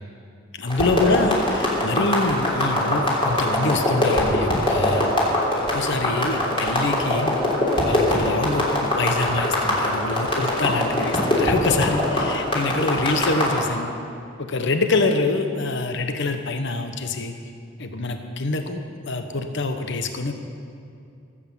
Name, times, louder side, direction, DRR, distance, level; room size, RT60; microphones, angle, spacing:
voice 1, 0.6-5.1 5.6-7.4 7.8-13.9 14.4-17.3 17.8-20.3, left 3 dB, 60° left, 7 dB, 1.0 m, -25 dB
sound 1, 0.7-13.6, left 1 dB, 25° left, 3.4 m, -22 dB
17.5 x 8.7 x 7.2 m, 2.5 s
head